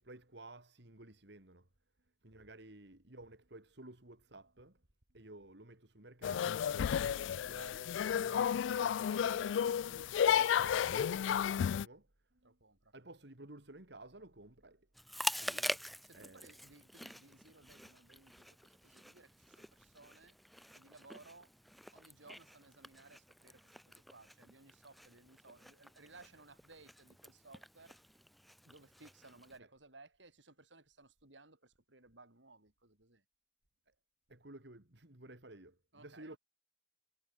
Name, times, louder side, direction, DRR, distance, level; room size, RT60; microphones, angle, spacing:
voice 1, 0.0-1.7 2.2-4.8 5.1-12.6 12.9-14.9 15.4-15.8 16.1-16.6 17.7-17.8 18.1-18.5 33.9-34.0 34.3-36.4, right 2 dB, 65° right, 2.9 m, -55 dB
sound 1, 6.2-11.9, left 8 dB, 90° left, 0.3 m, -32 dB
voice 2, 12.4-12.9 16.0-20.4 20.7-21.5 21.9-28.0 28.6-33.2 35.9-36.4, right 3 dB, 85° right, 6.9 m, -60 dB
Chewing mastication, 14.9-29.6, equal, ahead, 4.9 m, -46 dB
head